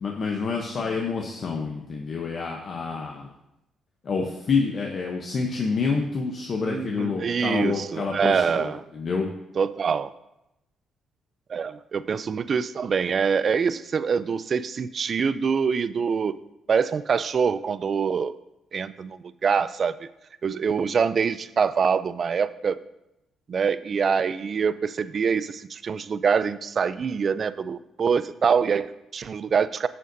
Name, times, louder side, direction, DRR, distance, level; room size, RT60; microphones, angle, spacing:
voice 1, 0.0-3.3 4.0-9.3, left 4 dB, 50° left, 1 dB, 0.8 m, -28 dB
voice 2, 6.6-8.8 9.6-10.1 11.5-16.4 16.7-18.3 18.7-20.0 20.4-22.8 23.5-29.9, right 6 dB, 45° right, 15 dB, 0.3 m, -25 dB
9.0 x 6.5 x 2.7 m, 0.88 s
cardioid pair, 90°, 0 cm